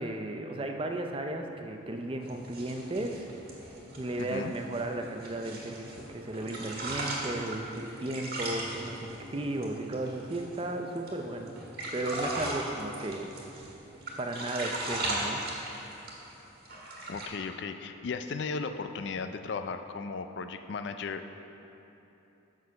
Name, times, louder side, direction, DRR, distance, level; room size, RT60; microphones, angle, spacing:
voice 1, 0.0-3.3 4.0-11.6 11.9-13.6 14.2-15.4, right 1 dB, 25° right, 4 dB, 0.4 m, -35 dB
sound 1, 1.1-16.4, equal, 5° right, 0.8 m, -52 dB
sound 2, 2.3-6.1 6.3-10.6 11.0-11.1 11.5-13.7 14.0-16.3 16.7-17.3, right 2 dB, 50° right, 1.5 m, -37 dB
voice 2, 4.2-4.5 17.1-21.4, left 4 dB, 60° left, 8 dB, 0.4 m, -36 dB
7.3 x 6.1 x 5.6 m, 3.0 s
head